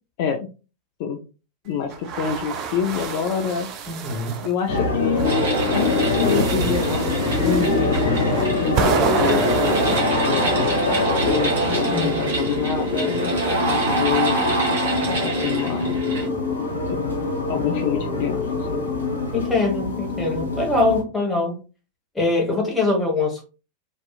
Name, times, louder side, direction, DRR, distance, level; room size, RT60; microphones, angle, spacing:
voice 1, 1.6-3.7 4.4-5.3 5.7-9.8 10.2-13.3 13.7-14.8 15.2-16.0 16.9-17.0 17.5-18.9, left 7 dB, 50° left, 0.3 m, -27 dB
sound 1, 1.9-4.5 5.1-10.0, right 7 dB, 40° right, 0.4 m, -28 dB
voice 2, 3.9-4.4 7.6-7.9 11.9-12.4 19.3-21.6 22.1-23.4, left 2 dB, 5° left, 1.2 m, -23 dB
sound 2, 4.7-21.0, left 3 dB, 80° left, 1.0 m, -24 dB
sound 3, 5.2-16.3, right 2 dB, 60° right, 1.0 m, -25 dB
2.6 x 2.3 x 2.3 m
figure-of-eight pair, 90°, 0 cm